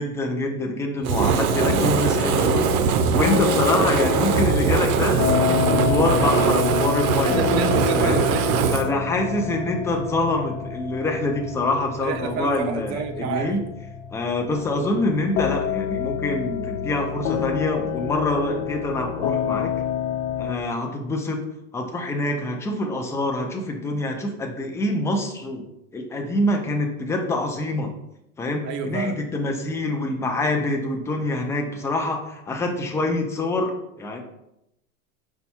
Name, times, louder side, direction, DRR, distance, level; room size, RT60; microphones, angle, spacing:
voice 1, 0.0-7.4 8.0-8.2 8.7-13.6 14.1-19.7 20.4-21.4 21.7-25.6 25.9-27.9 28.4-34.2, left 2 dB, 5° left, 2 dB, 0.4 m, -25 dB
Fire, 1.0-8.9, right 7 dB, 75° right, 0.6 m, -22 dB
sound 1, 1.5-20.5, left 9 dB, 60° left, 0.6 m, -28 dB
voice 2, 7.2-8.8 12.0-13.6 28.6-29.2 31.8-31.9, right 6 dB, 40° right, 7 dB, 0.6 m, -29 dB
5.2 x 2.3 x 4.2 m, 0.83 s
hypercardioid pair, 120°, 42 cm